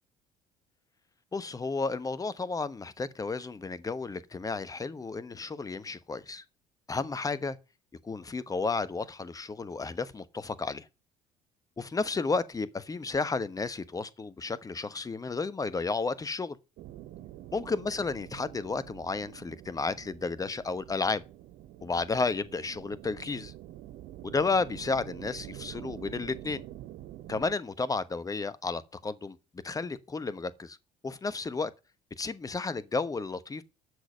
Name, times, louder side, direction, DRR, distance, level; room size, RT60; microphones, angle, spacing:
voice 1, 1.3-6.4 6.9-7.6 8.0-10.9 11.8-16.6 17.5-21.2 21.8-23.5 24.2-26.6 27.3-29.4 29.6-30.8 31.0-31.7 32.2-33.6, left 4 dB, 20° left, 1.1 m, -32 dB
sound 1, 16.8-27.6, right 13 dB, 55° right, 1.0 m, -47 dB
13.0 x 6.4 x 6.6 m
figure-of-eight pair, 55°, 18 cm